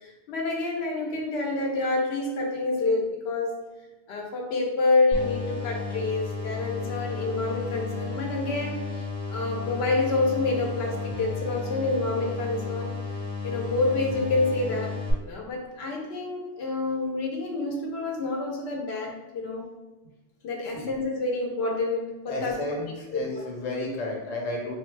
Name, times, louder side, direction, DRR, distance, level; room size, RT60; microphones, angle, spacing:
voice 1, 0.0-3.6 4.1-12.9 13.4-19.7 20.4-22.8 23.1-23.3, left 3 dB, 80° left, 0 dB, 0.9 m, -28 dB
sound 1, 5.1-15.1, left 4 dB, 5° left, 0.7 m, -33 dB
voice 2, 22.3-24.8, left 2 dB, 45° left, -2 dB, 0.8 m, -32 dB
3.6 x 2.0 x 3.1 m, 1.1 s
omnidirectional pair, 1.1 m